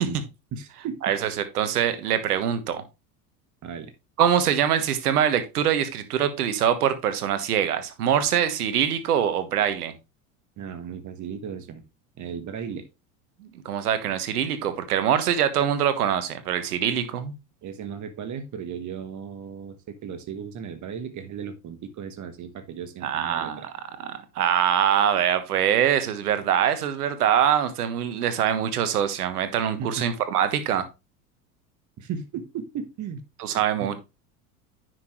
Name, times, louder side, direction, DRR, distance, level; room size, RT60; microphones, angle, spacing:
voice 1, 0.5-1.0 3.6-3.9 10.6-11.8 12.2-12.9 17.6-23.7 29.8-30.0 32.0-33.2 33.8-33.9, right 7 dB, 40° right, 1.3 m, -36 dB
voice 2, 1.0-2.8 4.2-9.9 13.4-17.3 23.0-23.7 24.0-30.8 33.4-34.0, right 9 dB, 85° right, 1.4 m, -24 dB
9.6 x 6.0 x 3.2 m
hypercardioid pair, 85°, 45 cm